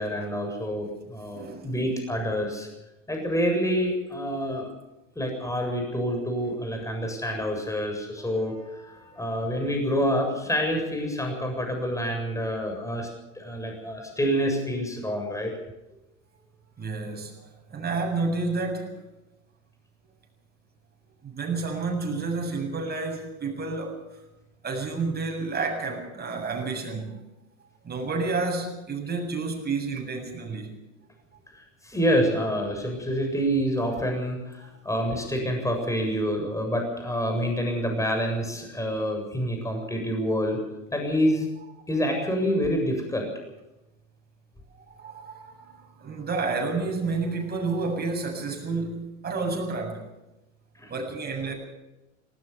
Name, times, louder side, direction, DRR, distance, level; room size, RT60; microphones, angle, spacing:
voice 1, 0.0-2.7 3.1-4.7 5.2-13.1 13.3-15.5 31.5-40.6 40.9-41.5 41.9-43.3 50.8-50.9, equal, 10° left, 3 dB, 7.5 m, -27 dB
voice 2, 1.3-1.7 9.0-9.1 16.8-17.3 17.7-19.0 21.2-24.2 24.6-27.2 27.8-30.8 44.7-50.1 50.9-51.5, right 3 dB, 25° right, 2 dB, 7.6 m, -30 dB
19.5 x 18.5 x 7.1 m, 0.97 s
hypercardioid pair, 85°, 38 cm